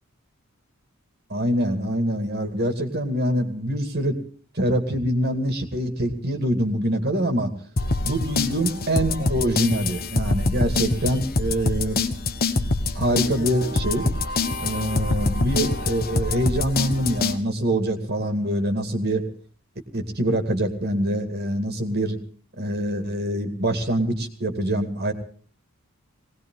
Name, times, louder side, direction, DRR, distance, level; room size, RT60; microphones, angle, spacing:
voice 1, 1.3-4.1 4.5-7.5 8.0-12.1 12.9-14.1 14.6-19.2 19.9-22.2 22.6-25.1, right 1 dB, 45° right, 6 dB, 2.3 m, -25 dB
sound 1, 7.8-17.4, left 3 dB, 45° left, 1.2 m, -25 dB
20.0 x 19.0 x 3.8 m, 0.42 s
head